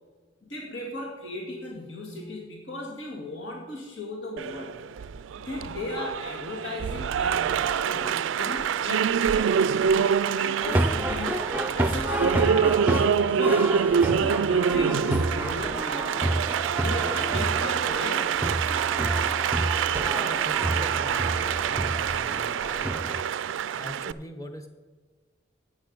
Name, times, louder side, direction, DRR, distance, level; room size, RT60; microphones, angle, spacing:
voice 1, 0.4-4.8 5.4-11.4 11.7-12.7 13.2-16.2 16.8-18.3, left 2 dB, 85° left, -1 dB, 2.1 m, -36 dB
Applause, 4.4-24.1, right 7 dB, 90° right, 0.3 m, -26 dB
sound 1, 10.6-23.2, right 1 dB, 10° right, 0.5 m, -29 dB
voice 2, 20.0-21.2 22.0-22.6 23.7-24.7, equal, 15° left, 6 dB, 1.0 m, -41 dB
10.0 x 8.8 x 5.2 m, 1.4 s
head